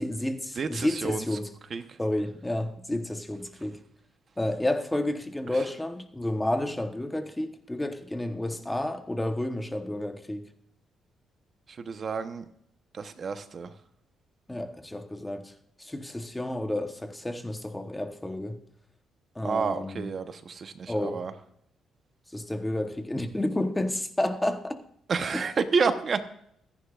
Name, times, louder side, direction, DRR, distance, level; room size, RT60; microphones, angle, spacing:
voice 1, 0.0-1.5 2.0-3.8 4.4-10.5 14.5-15.5 15.8-18.6 19.3-20.1 20.9-21.2 22.3-24.8 25.3-25.4, left 1 dB, 10° left, 1.0 m, -30 dB
voice 2, 0.6-1.2 1.7-2.0 5.5-5.6 11.7-12.4 12.9-13.7 19.4-21.3 25.1-26.2, right 5 dB, 45° right, 0.9 m, -30 dB
26.0 x 10.0 x 2.5 m
cardioid pair, 110°, 0 cm